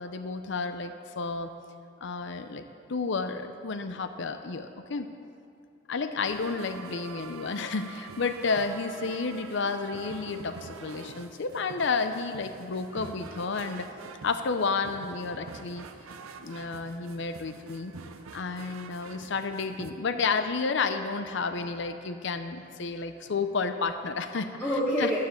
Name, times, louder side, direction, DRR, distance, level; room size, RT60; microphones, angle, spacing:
voice 1, 0.0-1.5 2.0-2.6 2.9-5.1 5.9-13.9 14.2-15.9 16.4-17.9 18.3-24.6 25.0-25.1, left 4 dB, 60° left, 9 dB, 0.6 m, -31 dB
sound 1, 6.2-19.9, right 4 dB, 85° right, 0.6 m, -46 dB
voice 2, 11.0-11.5 12.7-12.9 13.6-13.9 15.3-18.3 18.7-19.3 21.4-22.1 22.9-23.3 24.6-25.2, equal, 10° left, -6 dB, 1.4 m, -36 dB
10.0 x 9.8 x 7.5 m, 2.5 s
head